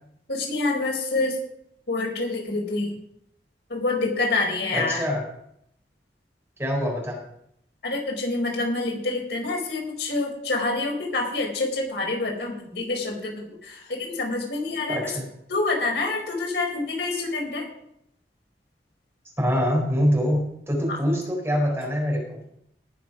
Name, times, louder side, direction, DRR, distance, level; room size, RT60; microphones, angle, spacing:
voice 1, 0.3-1.4 1.9-3.0 3.7-5.0 7.8-15.1 15.5-17.7 20.9-21.0, left 3 dB, 75° left, 0 dB, 4.6 m, -27 dB
voice 2, 4.7-5.2 6.6-7.2 14.9-15.2 19.4-22.4, equal, 15° right, -2 dB, 4.8 m, -24 dB
19.0 x 7.2 x 6.1 m, 0.76 s
head